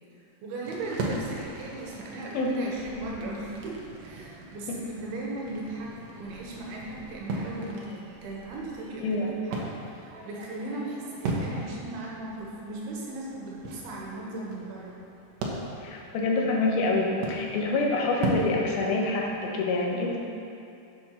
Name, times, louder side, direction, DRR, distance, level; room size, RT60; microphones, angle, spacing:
voice 1, 0.2-9.2 9.4-14.9 19.9-20.0, right 2 dB, 75° right, -3 dB, 3.1 m, -37 dB
sound 1, 0.6-19.5, right 2 dB, 90° right, 1.5 m, -38 dB
voice 2, 9.0-9.3 15.8-20.2, left 3 dB, 70° left, -1 dB, 2.8 m, -26 dB
8.0 x 7.2 x 5.8 m, 2.7 s
omnidirectional pair, 4.7 m